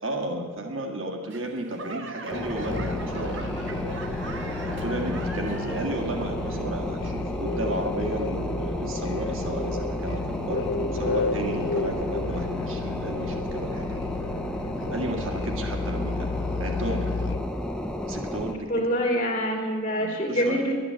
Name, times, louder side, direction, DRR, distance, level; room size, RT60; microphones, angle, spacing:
voice 1, 0.0-3.4 4.7-14.0 14.9-16.3 16.6-17.1 18.0-18.7 20.0-20.6, right 1 dB, 85° right, 3 dB, 1.8 m, -33 dB
Laughter / Clapping / Crowd, 1.3-6.1 6.4-6.9 7.5-7.6, right 3 dB, 65° right, 1.1 m, -40 dB
sound 1, 2.3-18.5, left 1 dB, 5° left, 0.8 m, -32 dB
Musical instrument, 2.6-17.6, left 3 dB, 65° left, 0.7 m, -33 dB
voice 2, 18.7-20.7, equal, 30° left, -1 dB, 2.5 m, -25 dB
11.5 x 10.5 x 8.6 m, 1.5 s
head